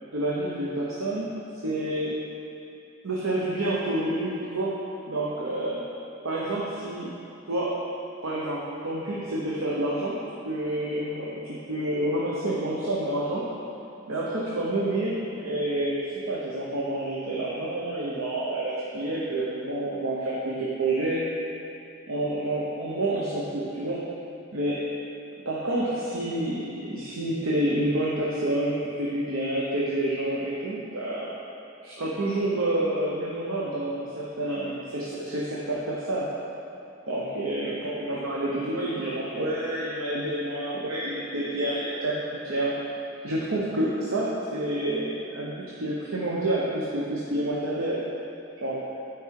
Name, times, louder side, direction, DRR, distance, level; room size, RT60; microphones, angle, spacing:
voice 1, 0.1-1.3 1.6-2.1 3.0-4.8 5.1-5.8 6.2-7.1 7.5-7.8 8.2-10.2 10.4-13.4 14.1-21.3 22.1-24.1 24.5-24.8 25.4-31.3 31.8-36.3 37.1-42.7 43.2-48.0 48.6-48.8, right 1 dB, 85° right, -6 dB, 1.0 m, -28 dB
9.3 x 4.7 x 4.8 m, 2.6 s
head